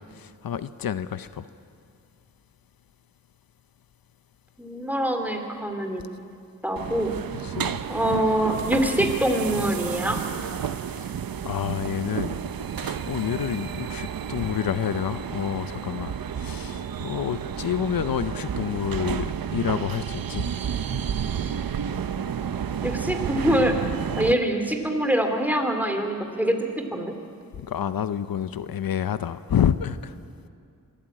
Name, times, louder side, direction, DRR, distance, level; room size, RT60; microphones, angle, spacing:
voice 1, 0.1-1.5 7.4-7.8 10.9-11.1 11.4-12.4 12.8-20.5 27.5-30.1, left 9 dB, 80° left, 13 dB, 0.7 m, -28 dB
voice 2, 4.6-6.0 6.6-7.1 7.9-10.2 22.8-23.7 24.2-26.6 26.9-27.1, equal, 5° right, 4 dB, 2.8 m, -24 dB
sound 1, 6.8-24.3, right 8 dB, 80° right, 0.8 m, -31 dB
24.0 x 14.0 x 8.7 m, 2.4 s
wide cardioid pair, 70°, 35 cm